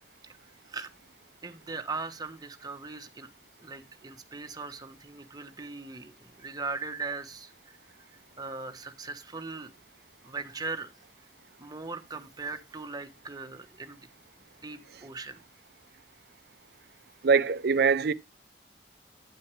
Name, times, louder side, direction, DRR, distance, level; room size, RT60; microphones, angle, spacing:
voice 1, 1.4-3.3 3.6-7.8 8.4-9.7 10.2-10.9 11.6-14.1 14.4-15.4, right 3 dB, 25° right, 1.1 m, -39 dB
voice 2, 17.2-18.1, right 5 dB, 65° right, 0.6 m, -23 dB
9.4 x 9.1 x 3.2 m
head